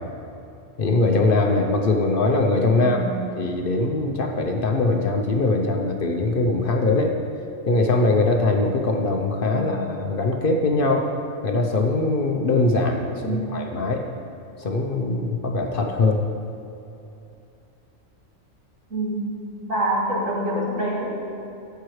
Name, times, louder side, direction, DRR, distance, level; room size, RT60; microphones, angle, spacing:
voice 1, 0.8-3.0 3.3-7.1 7.6-11.0 11.4-14.1 14.6-16.2, left 2 dB, 50° left, 2 dB, 0.8 m, -21 dB
voice 2, 2.7-3.2 9.5-9.7 13.2-13.6 18.9-21.2, right 1 dB, 85° right, -4 dB, 2.2 m, -26 dB
13.0 x 7.9 x 3.2 m, 2.8 s
omnidirectional pair, 1.3 m